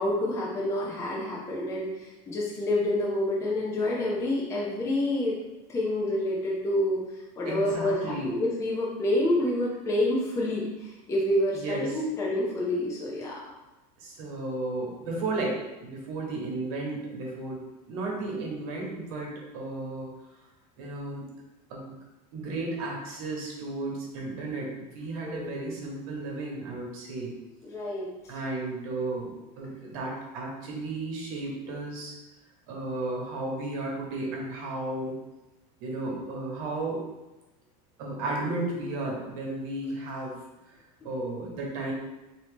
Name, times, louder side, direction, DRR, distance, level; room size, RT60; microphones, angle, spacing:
voice 1, 0.0-5.4 5.7-7.0 7.4-13.3 25.2-25.7 27.6-28.1, left 1 dB, 15° left, -4 dB, 0.5 m, -28 dB
voice 2, 7.4-8.3 11.5-12.0 14.0-20.1 20.8-21.2 21.7-22.0 22.3-27.3 28.3-32.1 32.7-35.1 35.8-37.0 38.0-40.3 40.7-40.8 41.0-41.9, right 2 dB, 65° right, -2 dB, 1.1 m, -34 dB
3.7 x 2.8 x 3.5 m, 1.0 s
supercardioid pair, 150°, 20 cm